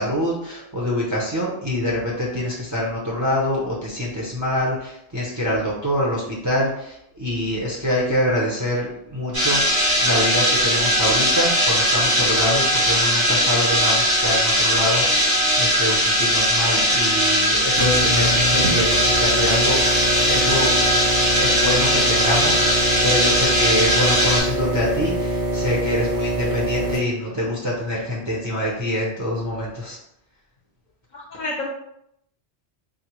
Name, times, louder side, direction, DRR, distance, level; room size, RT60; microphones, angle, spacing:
voice 1, 0.0-9.6 10.0-19.8 20.3-20.7 21.3-30.0, left 1 dB, 20° right, -5 dB, 0.5 m, -25 dB
sound 1, 9.3-24.4, equal, 90° right, 2.0 m, -19 dB
sound 2, 17.7-27.0, right 1 dB, 60° right, 0.9 m, -24 dB
voice 2, 31.1-31.6, left 2 dB, 45° left, -3 dB, 0.8 m, -31 dB
3.9 x 2.1 x 3.0 m, 0.77 s
omnidirectional pair, 1.2 m